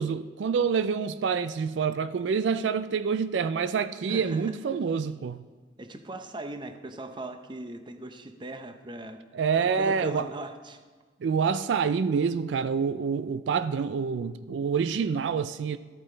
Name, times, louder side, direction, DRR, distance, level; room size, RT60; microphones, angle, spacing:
voice 1, 0.0-5.5 9.3-10.3 11.2-15.8, right 6 dB, 85° right, 0.4 m, -27 dB
voice 2, 4.1-4.6 5.8-9.2 9.6-10.8, right 2 dB, 25° right, 0.7 m, -39 dB
13.5 x 8.6 x 3.3 m
head